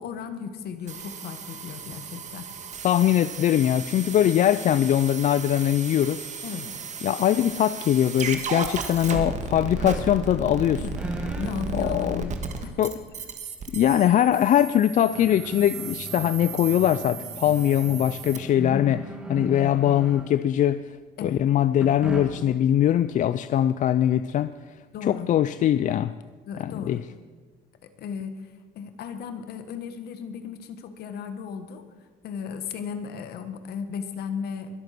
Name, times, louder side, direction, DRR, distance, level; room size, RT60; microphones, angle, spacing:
voice 1, 0.0-2.5 6.4-6.7 10.8-11.0 11.4-12.7 18.7-19.0 21.2-21.4 24.9-25.3 26.5-27.0 28.0-31.8 32.2-34.8, left 6 dB, 70° left, 9 dB, 1.6 m, -35 dB
sound 1, 0.9-18.4, right 5 dB, 45° right, 1.7 m, -35 dB
voice 2, 2.8-6.2 7.0-10.8 11.7-12.3 12.8-12.9 13.7-19.0 19.3-20.8 21.2-24.5 25.0-26.1 26.6-27.0, left 11 dB, 50° left, 14 dB, 0.4 m, -22 dB
sound 2, 9.7-10.5 10.7-11.5 12.2-12.3 14.4-14.5 14.8-20.5 21.8-22.6, right 1 dB, 5° right, 2.6 m, -37 dB
22.0 x 8.2 x 6.0 m, 1.4 s
cardioid pair, 110°, 17 cm